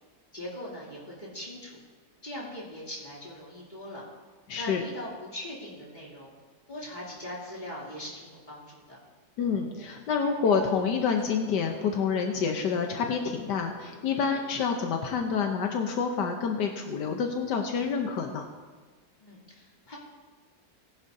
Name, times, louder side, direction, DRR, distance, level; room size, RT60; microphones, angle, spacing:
voice 1, 0.3-1.8 2.2-4.0 4.5-6.3 6.7-9.0 19.2-20.0, left 1 dB, 25° left, -6 dB, 3.2 m, -41 dB
voice 2, 4.5-4.8 9.4-18.5, left 6 dB, 80° left, 3 dB, 1.5 m, -28 dB
sound 1, 10.1-10.6 11.2-14.6, right 1 dB, 40° right, 3.5 m, -53 dB
18.0 x 10.5 x 2.7 m, 1.4 s
omnidirectional pair, 1.8 m